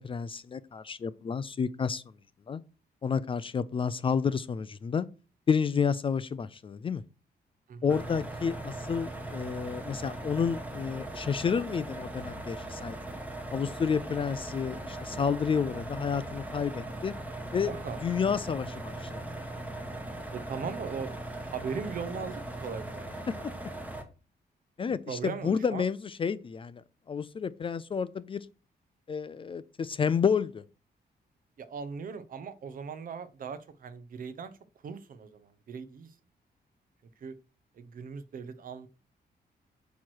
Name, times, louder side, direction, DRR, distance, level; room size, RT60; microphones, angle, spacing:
voice 1, 0.0-2.0 2.5-2.6 3.0-5.1 5.5-7.0 7.8-13.0 13.5-17.1 17.5-17.7 18.0-19.2 24.8-28.5 29.1-30.6, left 6 dB, 30° left, 0.3 m, -30 dB
sound 1, 7.9-24.0, right 1 dB, 10° right, 1.1 m, -39 dB
voice 2, 17.5-18.0 20.3-21.1 21.4-23.2 25.1-25.9 31.6-34.5 34.8-36.1 37.2-37.3 37.7-38.9, right 6 dB, 55° right, 0.7 m, -39 dB
8.3 x 3.1 x 6.2 m
wide cardioid pair, 155°, 17 cm